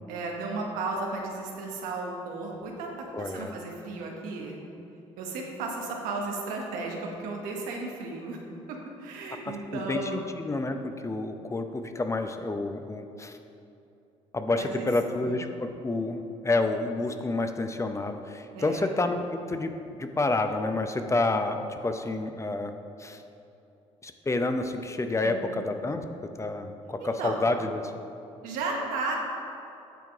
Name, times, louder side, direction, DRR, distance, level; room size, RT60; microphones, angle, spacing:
voice 1, 0.1-2.9 3.2-4.6 5.2-8.4 8.7-10.2 14.6-15.4 18.5-18.9 25.2-25.6 27.0-27.4 28.4-29.2, right 3 dB, 80° right, 0 dB, 1.1 m, -34 dB
voice 2, 3.1-3.5 9.5-13.4 14.3-19.7 20.0-22.7 23.0-23.2 24.0-26.0 26.4-27.9, left 2 dB, 20° left, 7 dB, 0.6 m, -29 dB
9.2 x 3.7 x 4.7 m, 2.8 s
hypercardioid pair, 60°, 14 cm